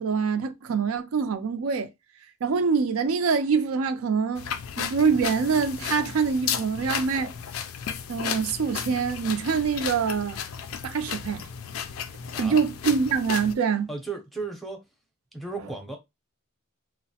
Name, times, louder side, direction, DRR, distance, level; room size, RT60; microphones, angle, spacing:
voice 1, 0.0-1.9 2.4-4.5 4.8-7.3 8.1-10.4 10.8-11.4 12.4-13.9, right 5 dB, 85° right, 0.4 m, -25 dB
sound 1, 4.4-13.5, left 8 dB, 70° left, 0.4 m, -34 dB
voice 2, 13.9-14.8 15.3-16.0, right 3 dB, ahead, 0.5 m, -34 dB
3.0 x 2.0 x 2.7 m
head